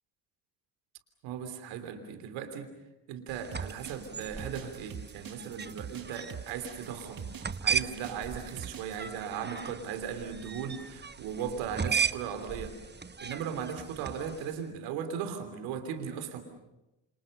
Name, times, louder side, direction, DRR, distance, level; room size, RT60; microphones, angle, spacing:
voice 1, 1.2-2.7 3.1-7.3 7.6-12.8 13.2-16.4, right 7 dB, 85° right, 8 dB, 3.2 m, -37 dB
sound 1, 3.3-14.6, right 6 dB, 25° right, 1.2 m, -37 dB
sound 2, 3.5-9.0, right 8 dB, 50° right, 1.8 m, -44 dB
28.0 x 28.0 x 6.7 m, 0.97 s
supercardioid pair, 50°, 44 cm